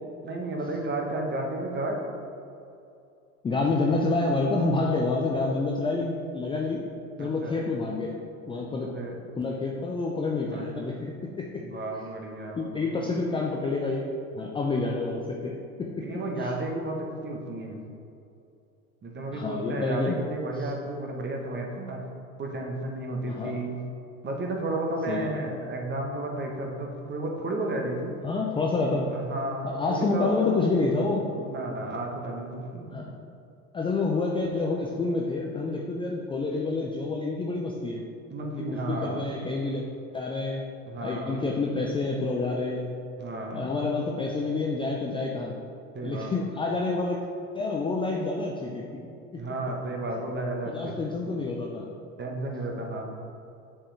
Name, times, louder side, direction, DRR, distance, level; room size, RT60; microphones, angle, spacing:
voice 1, 0.2-2.0 7.2-7.6 8.8-9.2 10.5-10.6 11.6-12.9 16.0-17.8 19.0-22.0 22.4-23.8 24.2-28.1 28.9-30.3 31.4-33.1 38.3-39.3 40.9-41.4 43.2-43.8 45.9-46.3 49.4-51.2 52.2-53.0, right 2 dB, 25° right, 1 dB, 1.1 m, -33 dB
voice 2, 3.4-6.8 7.2-8.2 8.5-8.9 9.4-11.6 12.6-14.1 14.4-15.9 16.4-16.5 19.3-20.2 20.6-20.7 23.3-23.6 25.1-25.3 28.2-29.1 29.6-31.3 32.9-33.1 33.7-38.0 38.6-39.8 40.1-40.6 41.0-42.9 43.5-45.5 46.0-47.2 47.5-49.1 49.3-49.4 50.7-51.9, left 3 dB, 15° left, -1 dB, 0.4 m, -28 dB
7.4 x 4.5 x 3.3 m, 2.6 s
hypercardioid pair, 75°, 41 cm